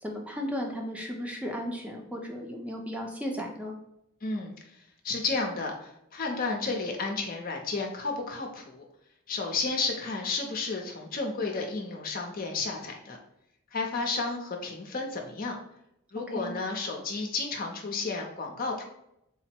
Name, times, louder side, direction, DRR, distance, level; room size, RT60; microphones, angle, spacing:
voice 1, 0.0-3.7 16.3-16.5, equal, 5° right, 0 dB, 0.6 m, -35 dB
voice 2, 4.2-4.5 5.0-8.9 9.3-13.2 13.7-15.6 16.1-18.8, left 3 dB, 45° left, 1 dB, 0.6 m, -32 dB
3.9 x 2.0 x 4.3 m, 0.81 s
head